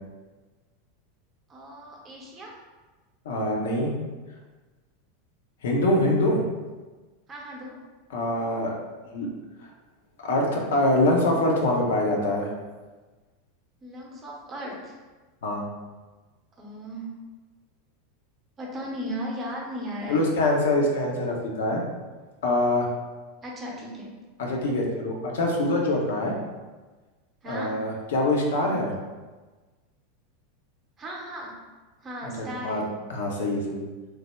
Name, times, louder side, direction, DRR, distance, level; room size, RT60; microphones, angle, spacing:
voice 1, 1.5-2.5 5.9-6.3 7.3-7.8 13.8-15.0 16.6-17.1 18.6-20.3 23.4-24.1 27.4-27.7 31.0-31.6 32.0-32.8, equal, 25° right, -2 dB, 0.7 m, -36 dB
voice 2, 3.2-3.9 5.6-6.4 8.1-8.7 9.1-9.3 10.2-12.5 15.4-15.6 20.1-21.8 22.4-22.9 24.4-26.3 27.5-28.9 32.2-32.8 33.1-33.9, left 1 dB, 65° left, 0 dB, 0.6 m, -24 dB
3.2 x 2.1 x 3.2 m, 1.3 s
figure-of-eight pair, 85°, 0 cm